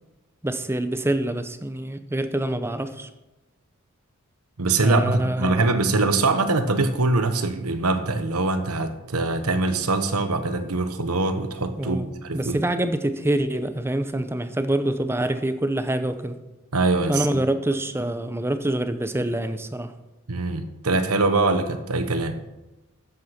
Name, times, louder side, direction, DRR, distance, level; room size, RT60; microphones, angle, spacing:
voice 1, 0.4-3.1 4.8-5.7 11.8-16.4 17.1-19.9, right 1 dB, 10° right, 10 dB, 0.7 m, -26 dB
voice 2, 4.6-12.6 16.7-17.4 20.3-22.4, right 3 dB, 85° right, 9 dB, 1.2 m, -23 dB
12.5 x 7.9 x 5.9 m, 1.0 s
head